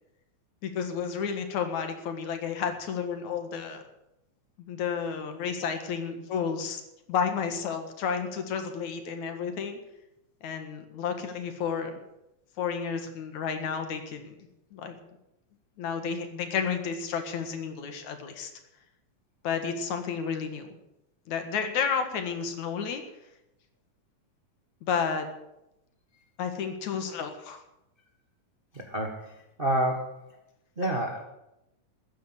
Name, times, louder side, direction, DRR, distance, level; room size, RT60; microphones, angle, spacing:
voice 1, 0.6-3.8 4.6-6.8 7.1-9.8 10.4-12.0 12.6-14.4 14.7-14.9 15.8-18.5 19.4-20.7 21.3-23.0 24.8-25.3 26.4-27.6, left 6 dB, 70° left, 7 dB, 2.9 m, -31 dB
voice 2, 28.7-30.2 30.8-31.2, right 1 dB, 30° right, 2 dB, 0.9 m, -29 dB
14.0 x 10.0 x 8.0 m, 0.89 s
omnidirectional pair, 3.6 m